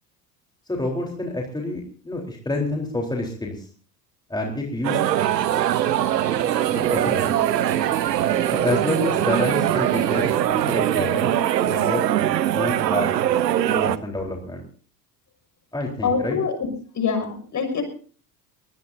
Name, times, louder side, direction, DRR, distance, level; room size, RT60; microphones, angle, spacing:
voice 1, 0.7-3.7 4.3-5.0 6.7-7.3 8.5-11.3 11.6-12.1 12.4-13.2 13.7-14.6 15.7-16.4, left 2 dB, 10° left, 0 dB, 4.0 m, -28 dB
sound 1, 4.8-14.0, right 11 dB, 80° right, 0.9 m, -22 dB
Mechanical fan, 5.2-10.4, right 2 dB, 85° left, 2.0 m, -42 dB
voice 2, 16.0-16.7 16.9-17.8, left 5 dB, 35° left, 6 dB, 6.2 m, -24 dB
22.0 x 19.5 x 2.7 m, 0.43 s
figure-of-eight pair, 70°, 49 cm